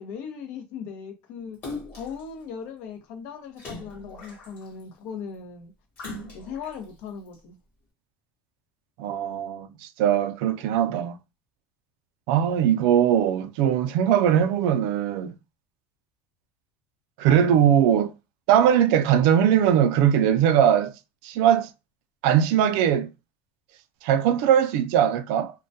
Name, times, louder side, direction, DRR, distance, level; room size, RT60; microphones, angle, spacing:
voice 1, 0.0-1.6 2.0-5.7 6.3-7.6, left 6 dB, 60° left, 0.6 m, -38 dB
Splash splatter, 1.6-2.2 3.6-4.8 6.0-6.7 7.3-7.4, left 2 dB, 35° left, 1.0 m, -39 dB
voice 2, 9.0-9.7 10.0-11.2 12.3-15.3 17.2-18.1 18.5-20.9 21.2-21.7 22.2-23.1 24.0-25.5, right 9 dB, 65° right, 0.3 m, -20 dB
2.2 x 2.1 x 2.6 m
cardioid pair, 170°, 5 cm